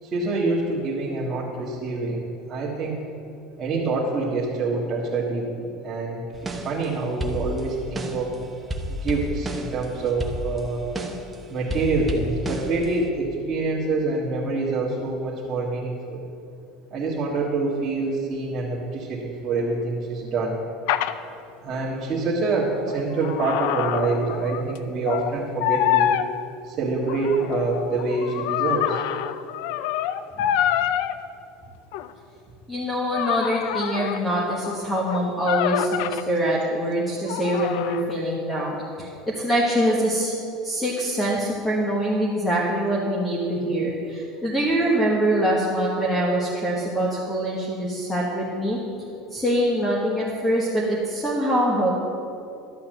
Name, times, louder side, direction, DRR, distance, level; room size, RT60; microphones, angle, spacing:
voice 1, 0.0-3.0 3.6-8.3 8.9-10.9 11.5-16.2 16.9-20.6 21.6-26.1 26.6-29.0, right 3 dB, 30° right, -6 dB, 1.7 m, -26 dB
sound 1, 6.3-6.9 7.2-8.3 8.7-11.3 11.7-13.1, equal, 15° right, 0.9 m, -31 dB
sound 2, 20.9-21.1 22.7-24.8 25.1-25.3 25.6-26.3 27.0-31.1 31.9-32.1 33.1-36.2 37.3-38.2, left 11 dB, 70° left, 0.4 m, -26 dB
voice 2, 32.7-40.3 40.6-48.8 49.3-52.0, right 1 dB, 10° left, -4 dB, 1.4 m, -24 dB
12.0 x 5.7 x 7.8 m, 2.7 s
supercardioid pair, 140°, 0 cm